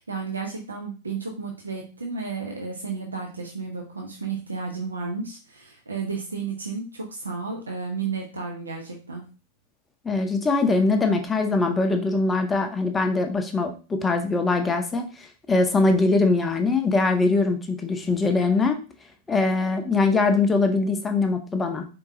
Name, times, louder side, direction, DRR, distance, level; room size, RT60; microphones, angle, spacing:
voice 1, 0.0-9.3, right 4 dB, 75° right, 0 dB, 0.7 m, -32 dB
voice 2, 10.0-18.8 19.3-21.9, left 3 dB, 15° left, 5 dB, 0.6 m, -22 dB
4.5 x 3.6 x 2.6 m, 0.34 s
figure-of-eight pair, 90°, 0 cm